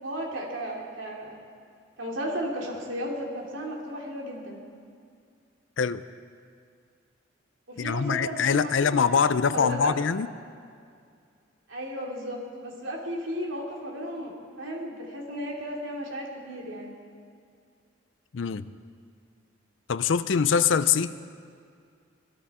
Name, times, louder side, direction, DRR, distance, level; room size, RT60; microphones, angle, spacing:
voice 1, 0.0-1.4 2.0-4.6 7.7-9.2 9.5-9.9 11.7-16.9, equal, 80° right, -2 dB, 2.9 m, -34 dB
voice 2, 7.8-10.3 18.3-18.7 19.9-21.1, left 6 dB, 75° left, 14 dB, 0.5 m, -24 dB
20.5 x 13.5 x 4.3 m, 2.2 s
head